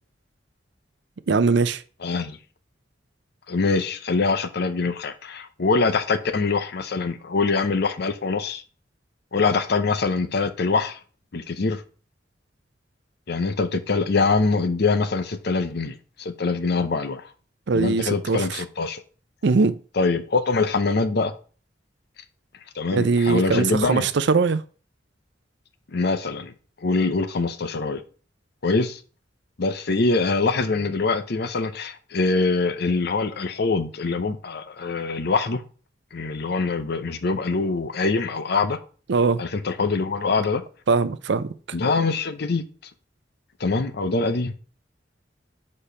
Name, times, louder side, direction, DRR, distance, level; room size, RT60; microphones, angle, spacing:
voice 1, 1.3-1.8 17.7-18.6 19.4-19.8 22.9-24.6 39.1-39.4 40.9-41.5, right 4 dB, 70° right, 0.5 m, -21 dB
voice 2, 2.0-2.4 3.5-8.6 9.3-11.0 11.3-11.8 13.3-17.3 17.7-19.0 20.0-21.3 22.8-24.1 25.9-26.5 26.8-28.0 28.6-29.0 29.6-35.6 36.1-38.8 39.4-40.6 41.7-42.6 43.6-44.5, left 4 dB, 60° left, 0.7 m, -24 dB
5.1 x 4.3 x 5.6 m
head